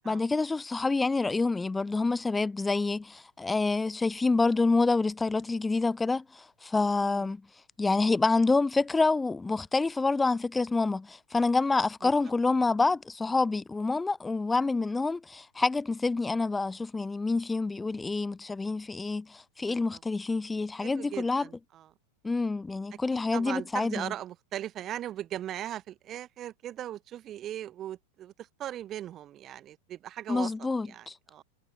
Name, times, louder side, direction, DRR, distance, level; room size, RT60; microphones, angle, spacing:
voice 1, 0.0-7.4 7.8-21.4 22.2-24.1 30.3-31.1, left 3 dB, 10° left, 0.4 m, -27 dB
voice 2, 7.0-7.3 12.0-12.1 19.7-20.0 20.8-21.9 23.3-31.4, right 12 dB, 30° right, 0.9 m, -39 dB
figure-of-eight pair, 90°, 0 cm